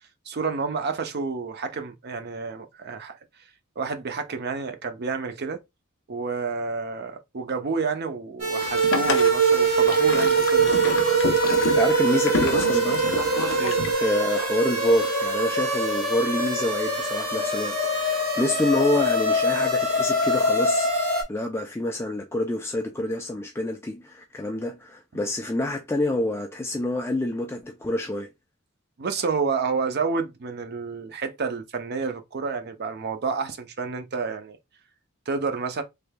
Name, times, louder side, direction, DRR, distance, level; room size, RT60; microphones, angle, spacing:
voice 1, 0.3-3.2 3.8-5.6 6.1-11.2 13.6-13.8 29.0-34.6 35.3-35.8, right 4 dB, 50° right, 0.6 m, -29 dB
sound 1, 8.4-21.2, right 2 dB, 80° right, 1.6 m, -23 dB
Boat Water vehicle, 8.6-13.9, left 4 dB, 65° left, 0.6 m, -30 dB
voice 2, 11.7-13.0 13.9-20.9 21.3-28.3, left 1 dB, 10° left, 0.3 m, -27 dB
3.3 x 3.3 x 2.2 m
head